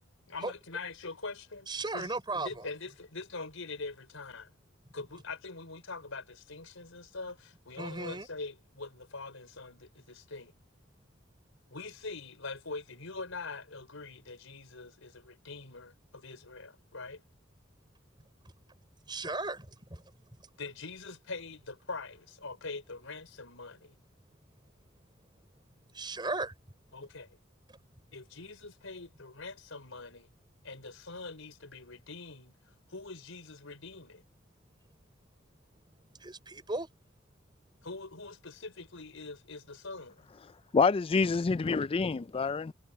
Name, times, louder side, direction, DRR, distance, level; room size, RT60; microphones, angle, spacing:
voice 1, 0.3-1.7 1.9-4.5 4.9-10.5 11.7-17.2 20.6-24.0 26.9-27.4 28.1-30.3 30.6-32.5 32.9-34.2 37.8-40.3, left 3 dB, 75° left, 5.1 m, -43 dB
voice 2, 1.7-2.6 7.8-8.3 19.1-20.0 25.9-26.5 36.2-36.9, right 2 dB, 20° right, 5.2 m, -36 dB
voice 3, 40.7-42.7, left 4 dB, 25° left, 0.3 m, -27 dB
head